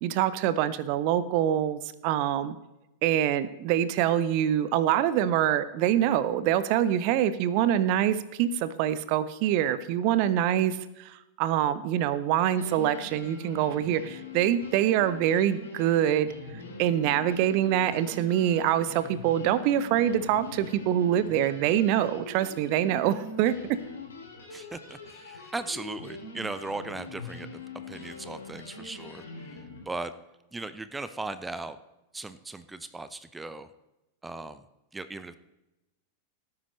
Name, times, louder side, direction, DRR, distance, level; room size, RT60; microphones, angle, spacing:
voice 1, 0.0-2.6 3.0-16.3 16.8-23.8, right 11 dB, 45° right, 15 dB, 0.7 m, -25 dB
sound 1, 12.1-12.2 12.5-29.8, left 3 dB, 70° left, 2.7 m, -43 dB
voice 2, 24.5-30.1 30.5-31.8 32.1-33.7 34.2-34.6 34.9-35.4, right 3 dB, 10° right, 13 dB, 0.7 m, -38 dB
17.5 x 9.5 x 3.2 m, 0.95 s
figure-of-eight pair, 90°, 0 cm